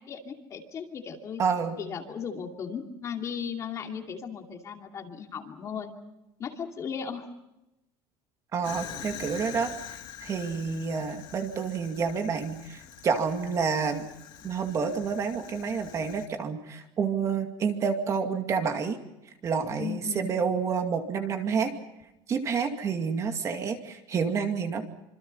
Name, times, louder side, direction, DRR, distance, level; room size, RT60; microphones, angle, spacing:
voice 1, 0.0-1.4 1.8-5.9 6.4-7.3 19.8-20.3, left 7 dB, 30° left, 3 dB, 2.6 m, -36 dB
voice 2, 1.4-1.8 8.5-9.7 10.2-14.1 14.4-19.0 19.4-21.7 22.3-24.9, right 6 dB, 30° right, 5 dB, 2.3 m, -29 dB
Fire, 8.6-16.3, left 10 dB, 45° left, 2.3 m, -45 dB
26.5 x 26.5 x 5.6 m, 0.90 s
cardioid pair, 170°, 11 cm